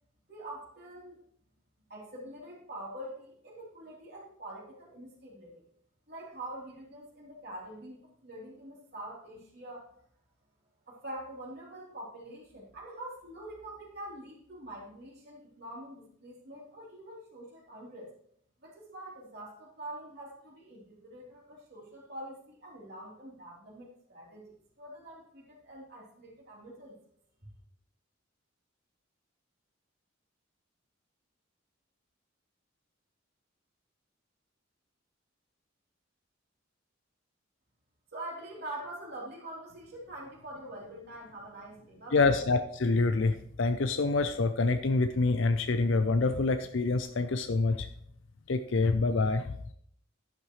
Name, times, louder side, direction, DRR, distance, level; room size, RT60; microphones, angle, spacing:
voice 1, 0.3-1.2 1.9-5.7 6.1-9.9 10.9-18.1 18.6-27.0 38.1-42.4, right 1 dB, 50° right, -4 dB, 3.7 m, -45 dB
voice 2, 42.1-47.9 48.5-49.5, left 3 dB, 65° left, 9 dB, 0.6 m, -26 dB
11.0 x 10.5 x 3.2 m, 0.66 s
head